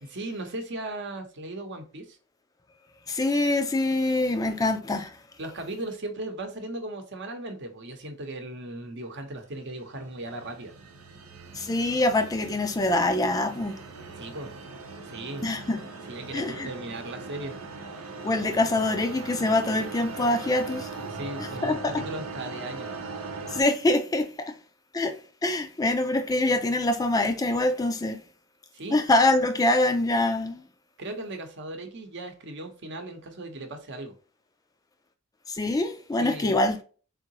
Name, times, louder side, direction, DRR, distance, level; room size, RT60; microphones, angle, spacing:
voice 1, 0.0-2.2 4.5-4.7 5.4-10.7 14.2-14.5 15.1-15.5 16.1-17.5 21.1-22.9 28.7-29.0 31.0-34.1 36.2-36.6, right 2 dB, 55° right, 0.8 m, -37 dB
voice 2, 3.1-5.2 11.5-13.8 15.4-15.8 16.3-16.7 18.2-20.9 21.4-22.0 23.5-24.6 24.9-28.2 28.9-30.6 35.5-36.8, left 2 dB, 15° left, 0.3 m, -25 dB
sound 1, 9.5-23.6, right 3 dB, 85° right, 0.7 m, -40 dB
3.7 x 3.6 x 2.9 m
head